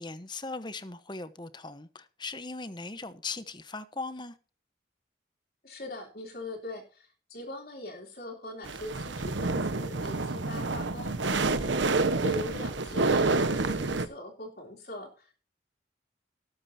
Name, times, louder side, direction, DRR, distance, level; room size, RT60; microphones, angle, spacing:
voice 1, 0.0-4.4, left 3 dB, 25° left, 1.0 m, -39 dB
voice 2, 5.6-15.4, left 1 dB, 50° left, 3.3 m, -41 dB
sound 1, 8.6-14.1, right 3 dB, 90° right, 1.2 m, -28 dB
18.5 x 8.8 x 2.8 m
head